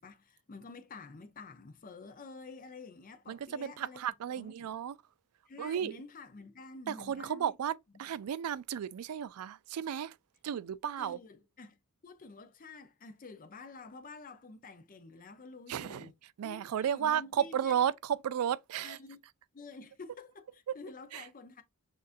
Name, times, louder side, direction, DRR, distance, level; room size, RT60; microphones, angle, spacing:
voice 1, 0.0-4.0 4.3-4.7 5.5-7.5 11.0-11.8 12.0-16.1 16.4-17.7 18.8-19.2 19.5-21.6, left 3 dB, 40° left, 0.6 m, -49 dB
voice 2, 3.3-5.0 5.6-5.9 6.9-7.7 8.0-10.1 10.4-11.2 15.7-16.1 16.4-19.0 21.1-21.2, right 9 dB, 80° right, 0.3 m, -33 dB
6.5 x 2.5 x 2.5 m
head